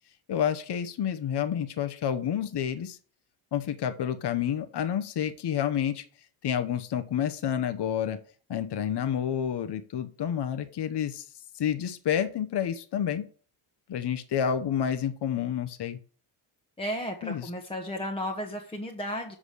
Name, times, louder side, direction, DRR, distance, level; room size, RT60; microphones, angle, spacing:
voice 1, 0.3-3.0 3.5-6.0 6.4-8.2 8.5-11.2 11.6-13.2 13.9-16.0 17.2-17.5, left 9 dB, 55° left, 9 dB, 0.9 m, -29 dB
voice 2, 16.8-19.4, equal, 10° left, 1 dB, 1.0 m, -34 dB
7.5 x 4.9 x 6.7 m, 0.43 s
wide cardioid pair, 130°, 50 cm